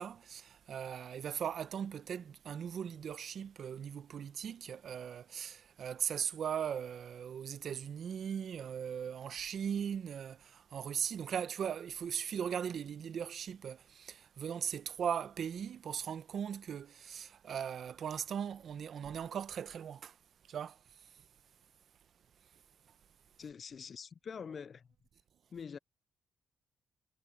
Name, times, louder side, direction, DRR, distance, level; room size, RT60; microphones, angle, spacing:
voice 1, 0.0-20.2 20.5-20.8, right 8 dB, 60° right, 0.8 m, -39 dB
voice 2, 23.4-24.9 25.5-25.8, left 6 dB, 45° left, 0.4 m, -45 dB
cardioid pair, 90°, 0 cm